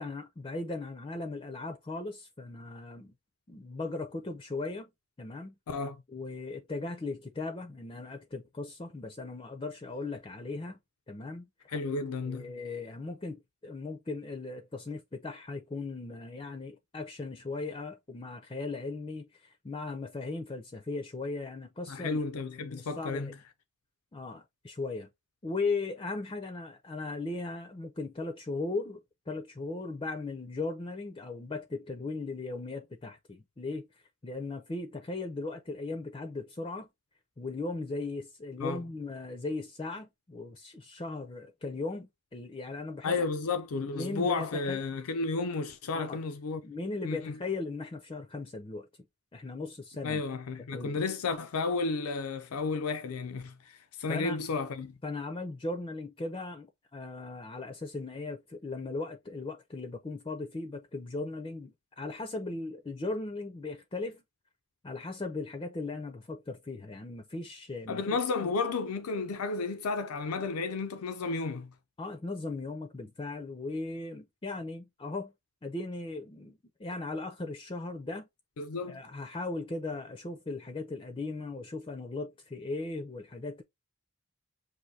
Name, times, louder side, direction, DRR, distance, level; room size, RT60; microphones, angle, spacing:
voice 1, 0.0-3.1 3.5-4.9 5.2-5.5 6.1-10.8 11.1-11.7 12.3-22.2 22.6-23.3 24.1-25.1 25.4-33.9 34.2-36.9 37.4-43.2 43.9-44.8 45.9-46.2 46.6-48.9 49.3-50.2 50.7-51.0 54.1-54.4 55.0-64.2 64.8-68.0 68.4-68.5 72.0-75.3 75.6-78.3 78.9-83.6, left 3 dB, 25° left, 0.4 m, -38 dB
voice 2, 5.7-6.0 11.7-12.5 21.9-23.3 38.6-38.8 43.0-46.6 47.0-47.4 50.0-54.9 67.9-71.7 78.6-79.0, left 4 dB, 85° left, 0.5 m, -32 dB
6.2 x 2.6 x 2.7 m
head